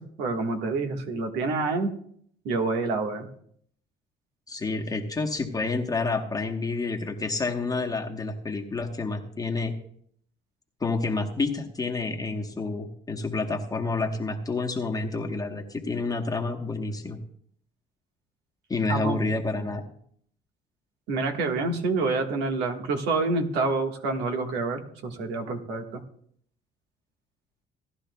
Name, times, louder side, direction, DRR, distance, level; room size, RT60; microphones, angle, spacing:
voice 1, 0.2-1.9 2.4-3.3 18.9-19.2 21.1-26.0, right 3 dB, 85° right, 4 dB, 1.5 m, -27 dB
voice 2, 4.5-9.7 10.8-17.2 18.7-19.9, left 3 dB, 20° left, 1 dB, 1.1 m, -29 dB
17.0 x 11.0 x 2.3 m, 0.64 s
cardioid pair, 110°, 17 cm